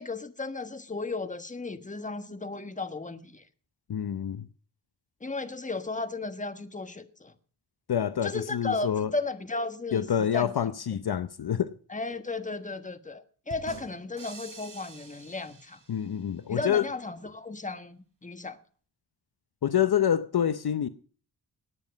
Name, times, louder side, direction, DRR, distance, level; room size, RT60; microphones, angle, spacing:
voice 1, 0.0-3.4 5.2-7.3 8.2-10.5 10.9-11.0 11.9-15.8 16.5-18.6, left 3 dB, 15° left, 1.4 m, -35 dB
voice 2, 3.9-4.5 7.9-9.1 9.9-11.7 15.9-16.9 19.6-20.9, left 9 dB, 60° left, 0.8 m, -27 dB
sound 1, 13.5-16.3, right 3 dB, 45° right, 4.1 m, -47 dB
18.0 x 9.6 x 5.1 m
wide cardioid pair, 95°, 43 cm